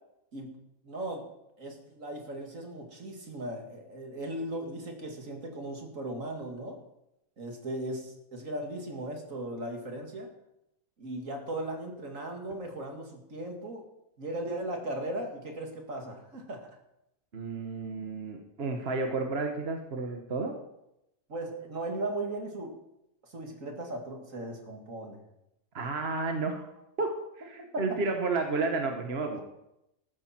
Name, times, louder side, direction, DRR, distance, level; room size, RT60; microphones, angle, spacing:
voice 1, 0.8-1.2 1.6-6.8 7.4-10.3 11.0-13.8 14.2-16.7 21.3-22.8 23.2-25.2 27.6-27.8, right 1 dB, 70° right, 2 dB, 2.6 m, -37 dB
voice 2, 17.3-20.5 25.7-26.7 27.0-27.1 27.4-29.4, right 3 dB, 50° right, 4 dB, 1.4 m, -31 dB
13.5 x 13.5 x 4.4 m, 0.85 s
omnidirectional pair, 1.4 m